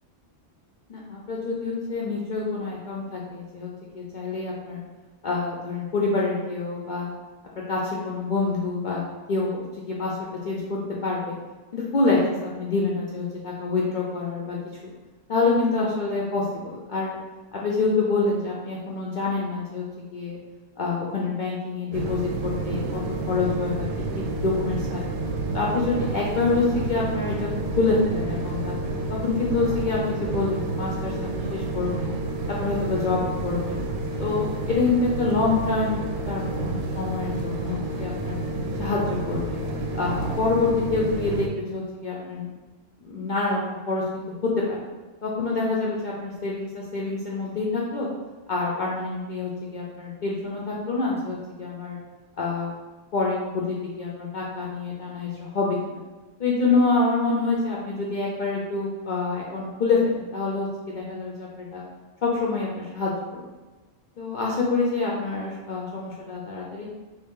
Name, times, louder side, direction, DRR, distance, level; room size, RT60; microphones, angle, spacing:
voice 1, 0.9-3.7 3.9-4.8 5.2-7.1 7.7-9.0 9.3-10.2 10.4-11.3 11.7-14.6 15.3-17.2 17.5-19.8 20.1-20.4 20.8-23.0 23.3-23.9 24.1-25.0 25.5-27.5 27.8-28.7 29.1-32.1 32.5-33.8 34.2-36.0 36.3-38.4 38.8-39.6 39.9-42.5 43.0-44.8 45.2-48.1 48.5-52.0 52.4-52.7 53.1-56.0 56.4-61.8 62.2-63.4 64.2-66.8, left 3 dB, 70° left, -4 dB, 0.4 m, -26 dB
sound 1, 21.9-41.5, right 2 dB, 80° right, 1.0 m, -29 dB
3.1 x 2.8 x 3.6 m, 1.2 s
omnidirectional pair, 1.4 m